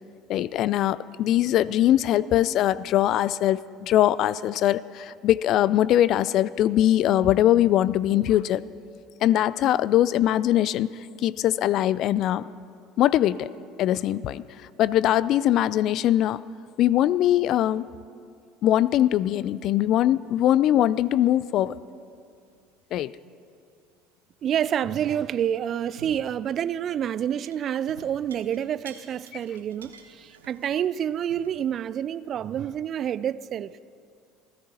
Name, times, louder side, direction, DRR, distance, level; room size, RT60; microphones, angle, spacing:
voice 1, 0.3-8.6 9.2-10.9 11.2-12.5 13.0-13.5 13.8-14.4 14.8-16.4 16.8-17.9 18.6-21.8 22.9-23.1, left 12 dB, 50° left, 0.4 m, -21 dB
sound 1, 20.2-21.1 21.5-21.9 22.5-22.7 25.4-25.5 26.0-26.5 26.9-31.6, right 6 dB, 85° right, 1.0 m, -50 dB
voice 2, 24.4-33.7, right 9 dB, 45° right, 0.4 m, -28 dB
27.5 x 16.0 x 2.9 m
figure-of-eight pair, 65°, 0 cm